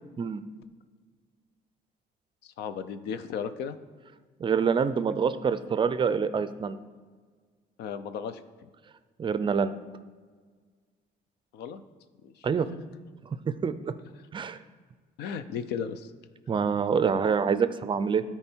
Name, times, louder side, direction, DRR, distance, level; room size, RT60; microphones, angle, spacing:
voice 1, 2.4-3.8 7.8-8.7 11.5-11.8 12.2-12.5 15.2-16.1, left 7 dB, 80° left, 12 dB, 0.6 m, -35 dB
voice 2, 4.4-6.8 9.2-9.7 12.4-12.7 13.5-13.9 14.3-14.6 16.5-18.2, right 6 dB, 30° right, 13 dB, 0.4 m, -26 dB
12.5 x 4.5 x 4.5 m, 1.5 s
cardioid pair, 110°, 17 cm